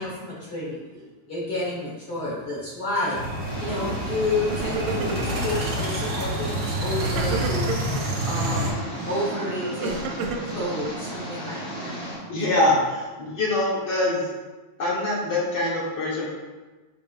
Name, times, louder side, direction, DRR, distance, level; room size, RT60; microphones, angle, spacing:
voice 1, 0.0-7.7 8.2-12.0, left 2 dB, 50° left, -6 dB, 1.2 m, -30 dB
sound 1, 3.1-8.7, right 1 dB, 65° right, 0.9 m, -28 dB
Engine, 3.5-12.1, right 1 dB, 30° left, 1.1 m, -35 dB
Crying sobbing, 3.8-4.2 4.4-5.5 6.0-6.4 7.0-8.0 8.9-11.2, right 4 dB, 85° right, 2.4 m, -33 dB
voice 2, 12.3-14.2 14.8-16.3, left 2 dB, 85° left, -7 dB, 1.0 m, -24 dB
7.5 x 5.4 x 2.5 m, 1.2 s
omnidirectional pair, 3.8 m